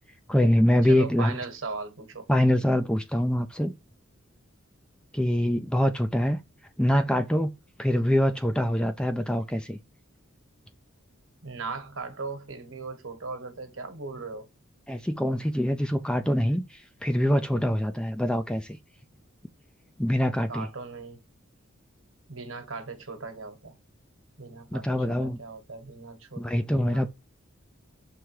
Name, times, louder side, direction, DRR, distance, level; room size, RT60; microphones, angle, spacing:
voice 1, 0.3-1.4 2.3-3.8 5.1-6.4 6.8-7.5 7.8-9.8 14.9-18.8 20.0-20.7 24.7-25.4 26.4-27.1, left 1 dB, 5° left, 0.4 m, -24 dB
voice 2, 0.8-2.3 11.4-14.5 20.5-21.2 22.3-23.8 24.4-26.5 26.8-27.1, right 4 dB, 65° right, 1.4 m, -38 dB
6.1 x 3.4 x 4.7 m
head